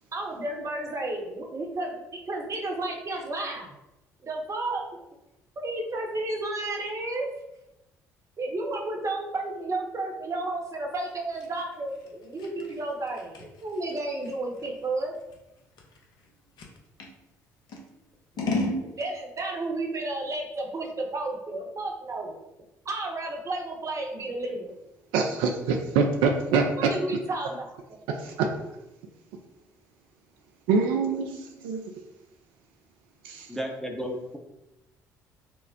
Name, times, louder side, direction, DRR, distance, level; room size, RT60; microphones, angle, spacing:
voice 1, 0.1-3.7 4.2-4.8 5.6-7.3 8.4-15.1 19.0-22.4 22.9-24.7 26.5-28.0, right 2 dB, 35° right, 1 dB, 0.8 m, -32 dB
Scissors, 11.0-17.2 17.7-18.8, left 2 dB, 55° left, 0.7 m, -35 dB
voice 2, 25.1-26.9 28.2-28.3 30.7-31.8 33.2-33.4, right 5 dB, 70° right, 3 dB, 0.4 m, -24 dB
voice 3, 33.5-34.4, equal, 5° left, 1 dB, 0.7 m, -33 dB
4.4 x 2.0 x 2.7 m, 0.93 s
hypercardioid pair, 50°, 9 cm